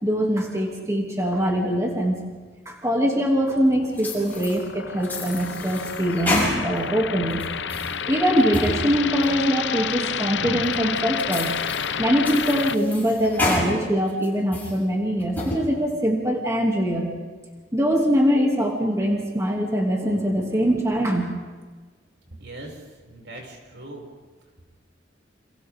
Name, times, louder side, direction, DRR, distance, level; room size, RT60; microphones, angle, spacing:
voice 1, 0.0-2.2 2.7-7.4 8.1-11.6 11.9-17.1 17.7-21.3, equal, 15° right, -1 dB, 2.9 m, -23 dB
sound 1, 3.5-12.8, left 7 dB, 80° left, 0.7 m, -30 dB
sound 2, 4.0-4.6 5.0-6.9 7.3-7.9 8.4-8.8 9.2-9.3 9.9-10.0 10.6-10.7 11.2-11.9 12.2-13.7 14.1-14.7 15.2-15.6, left 2 dB, 10° left, 7.7 m, -29 dB
voice 2, 22.4-24.1, right 1 dB, 85° right, -1 dB, 6.8 m, -40 dB
30.0 x 28.5 x 3.8 m, 1.4 s
head